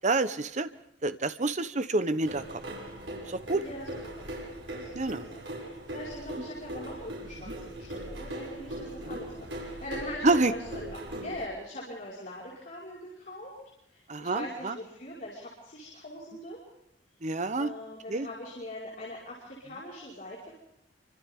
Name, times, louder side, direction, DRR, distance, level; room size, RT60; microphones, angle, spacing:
voice 1, 0.0-0.7 1.0-2.4 3.3-3.6 4.9-5.2 10.2-10.5 14.1-14.8 17.2-17.7 18.1-18.3, right 2 dB, 40° right, 11 dB, 1.0 m, -27 dB
sound 1, 2.2-11.4, right 1 dB, 80° right, 6.3 m, -40 dB
voice 2, 3.5-3.9 4.2-4.3 4.7-13.5 13.9-16.6 17.6-20.5, left 1 dB, 45° left, -6 dB, 5.2 m, -42 dB
27.5 x 25.5 x 3.7 m, 0.84 s
head